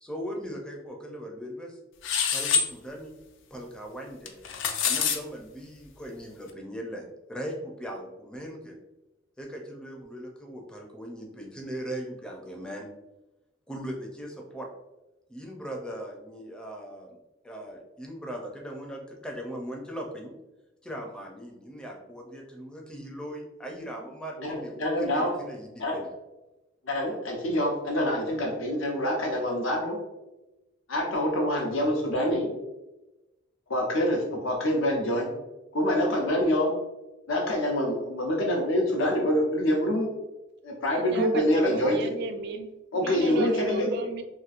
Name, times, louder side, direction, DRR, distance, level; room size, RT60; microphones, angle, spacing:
voice 1, 0.0-1.8 2.3-3.1 3.5-4.3 4.8-8.8 9.4-12.9 13.7-14.7 15.3-17.2 17.4-20.3 20.8-26.1, equal, 5° left, 0 dB, 0.4 m, -39 dB
sound 1, 2.0-2.7 4.3-5.2, left 6 dB, 70° left, 0.4 m, -25 dB
voice 2, 24.4-25.3 25.8-26.0 26.8-30.0 30.9-32.5 33.7-35.3 35.7-36.7 37.3-40.1 40.6-42.0 42.9-43.9, equal, 85° left, 0 dB, 0.8 m, -26 dB
voice 3, 40.9-44.2, right 3 dB, 60° right, 8 dB, 0.3 m, -36 dB
2.9 x 2.6 x 2.4 m, 1.0 s
head